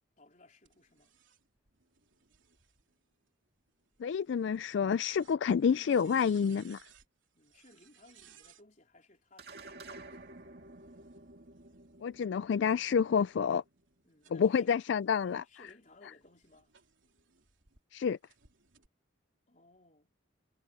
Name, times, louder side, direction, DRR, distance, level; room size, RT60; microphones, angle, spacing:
voice 1, 0.2-1.1 7.3-10.3 14.0-14.8 15.4-16.7 19.5-20.1, left 2 dB, 40° left, 4.0 m, -61 dB
sound 1, 0.7-8.7 9.8-12.2 12.7-17.8 18.2-18.9, right 9 dB, 70° right, 3.3 m, -65 dB
voice 2, 4.0-6.8 12.0-13.6 14.3-15.4 17.9-18.2, left 6 dB, 60° left, 0.3 m, -28 dB
sound 2, 9.4-14.0, right 2 dB, 50° right, 2.4 m, -52 dB
head